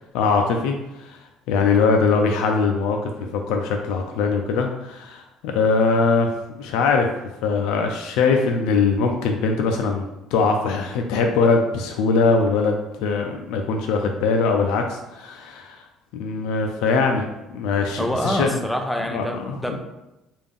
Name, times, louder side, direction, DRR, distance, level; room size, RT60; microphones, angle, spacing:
voice 1, 0.1-1.2 1.5-6.3 6.6-7.1 7.4-10.0 10.3-15.8 16.1-17.3 17.5-18.6 19.1-19.8, left 4 dB, 90° left, 3 dB, 0.4 m, -21 dB
voice 2, 18.0-19.8, equal, ahead, 3 dB, 0.4 m, -26 dB
3.4 x 2.4 x 3.5 m, 0.97 s
cardioid pair, 150°, 0 cm